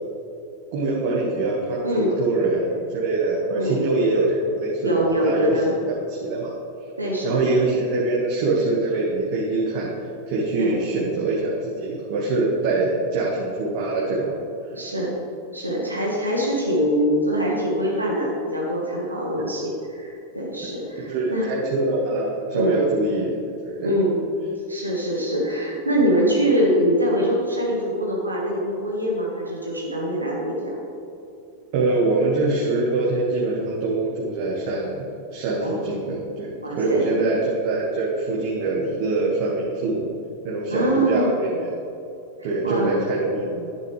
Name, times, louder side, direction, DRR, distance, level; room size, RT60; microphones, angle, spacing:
voice 1, 0.7-5.6 6.1-6.5 7.2-9.9 10.3-14.4 21.0-23.9 31.7-35.0 35.3-40.1 40.4-41.8 42.4-43.7, right 2 dB, 45° right, -5 dB, 1.9 m, -24 dB
voice 2, 1.8-2.2 3.6-3.8 4.8-5.8 7.0-7.5 10.6-10.8 14.7-15.1 15.5-21.5 22.5-22.8 23.8-24.2 24.7-30.8 35.6-35.8 36.6-37.2 40.7-41.3 42.6-43.0, equal, 85° right, -3 dB, 1.7 m, -23 dB
11.0 x 10.0 x 3.4 m, 2.7 s
figure-of-eight pair, 90°, 0 cm